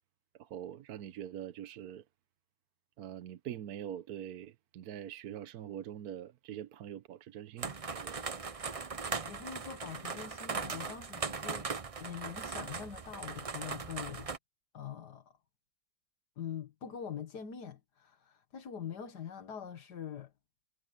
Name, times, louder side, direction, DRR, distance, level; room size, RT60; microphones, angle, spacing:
voice 1, 0.4-2.0 3.0-8.3, right 10 dB, 70° right, 1.2 m, -44 dB
sound 1, 7.6-14.4, right 5 dB, 40° right, 0.5 m, -39 dB
voice 2, 9.3-11.7 12.0-14.3 14.7-15.4 16.4-20.3, left 8 dB, 70° left, 2.1 m, -44 dB
omnidirectional pair, 1.8 m